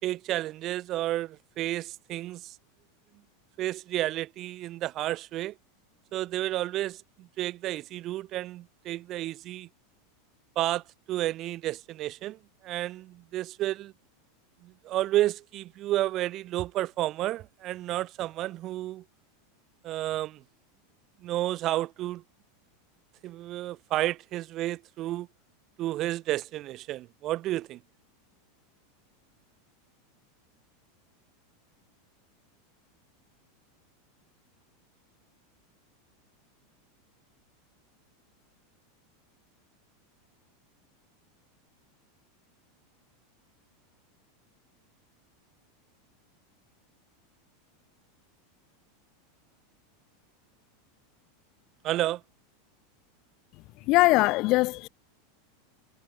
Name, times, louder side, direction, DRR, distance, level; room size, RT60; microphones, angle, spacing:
voice 1, 0.0-2.6 3.6-5.6 6.1-9.7 10.6-13.9 14.6-19.0 19.8-20.4 21.2-22.2 23.2-25.3 25.8-27.8 51.8-52.2, right 15 dB, 45° right, 2.2 m, -31 dB
voice 2, 53.9-54.9, left 22 dB, 50° left, 0.5 m, -21 dB
hypercardioid pair, 100°, 0 cm